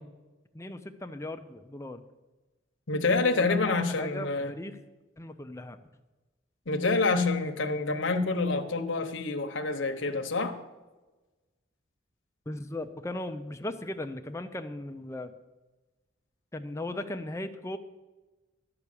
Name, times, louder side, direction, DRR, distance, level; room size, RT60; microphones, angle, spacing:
voice 1, 0.5-2.0 3.3-4.8 5.2-5.8 12.5-15.3 16.5-17.8, left 1 dB, 15° left, 8 dB, 0.5 m, -37 dB
voice 2, 2.9-4.5 6.7-10.6, left 3 dB, 75° left, 5 dB, 1.0 m, -27 dB
12.0 x 5.9 x 8.4 m, 1.1 s
head